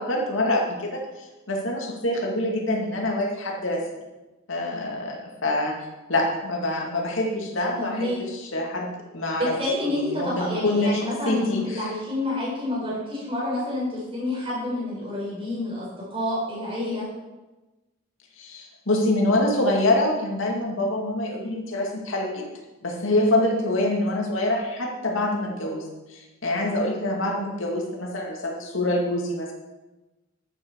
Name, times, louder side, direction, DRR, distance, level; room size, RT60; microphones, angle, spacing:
voice 1, 0.0-3.9 4.5-5.8 6.1-9.5 9.9-11.9 18.4-22.5 22.8-29.5, left 1 dB, 85° left, 0 dB, 2.3 m, -25 dB
voice 2, 7.8-8.2 9.4-17.1 23.1-23.4, left 1 dB, 30° right, -7 dB, 4.6 m, -28 dB
11.5 x 9.0 x 4.7 m, 1.1 s
head